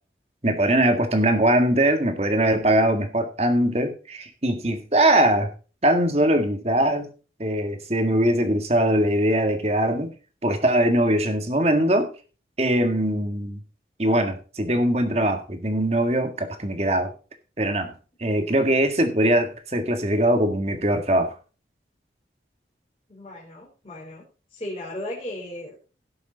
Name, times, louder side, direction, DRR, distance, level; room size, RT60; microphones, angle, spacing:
voice 1, 0.4-5.5 5.8-7.1 7.4-10.1 10.4-12.1 12.6-13.6 14.0-17.1 17.6-21.4, right 1 dB, 35° right, 6 dB, 1.8 m, -21 dB
voice 2, 23.1-24.2 24.5-25.8, left 1 dB, 30° left, -4 dB, 3.9 m, -36 dB
17.0 x 6.9 x 4.0 m, 0.35 s
head